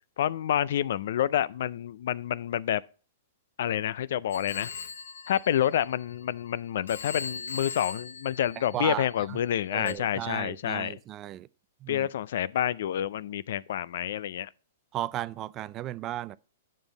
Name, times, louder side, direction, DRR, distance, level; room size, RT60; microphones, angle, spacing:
voice 1, 0.2-2.8 3.6-4.7 5.3-11.0 11.9-14.5, left 10 dB, 65° left, 0.3 m, -28 dB
Telephone, 4.3-6.4 6.9-9.2 9.9-10.0, left 5 dB, 85° left, 0.9 m, -40 dB
voice 2, 8.7-9.4 9.7-11.5 11.8-12.1 14.9-16.4, right 13 dB, 30° right, 0.3 m, -35 dB
9.1 x 5.4 x 3.9 m
hypercardioid pair, 130°, 0 cm